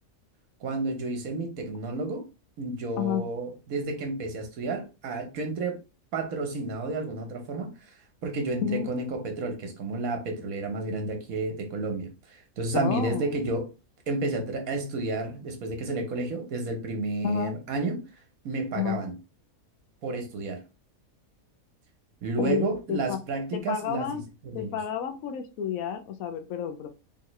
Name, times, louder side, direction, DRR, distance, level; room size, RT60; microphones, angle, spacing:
voice 1, 0.6-2.2 2.6-5.8 6.1-7.7 8.2-13.7 14.1-18.0 18.4-19.1 20.0-20.6 22.2-24.1 24.4-24.8, right 2 dB, 75° right, 1.5 m, -31 dB
voice 2, 12.7-13.3 17.2-17.5 18.7-19.0 22.4-23.2 23.5-24.2 24.5-26.9, left 8 dB, 75° left, 1.1 m, -30 dB
3.8 x 3.2 x 3.1 m
omnidirectional pair, 1.5 m